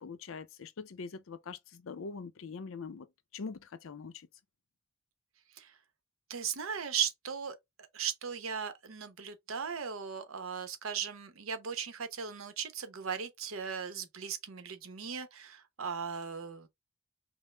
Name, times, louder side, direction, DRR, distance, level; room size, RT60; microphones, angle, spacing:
voice 1, 0.0-3.1 3.3-4.3, left 4 dB, 70° left, 0.5 m, -43 dB
voice 2, 6.3-7.6 7.9-16.7, right 7 dB, 80° right, 0.8 m, -37 dB
5.3 x 2.0 x 3.3 m
head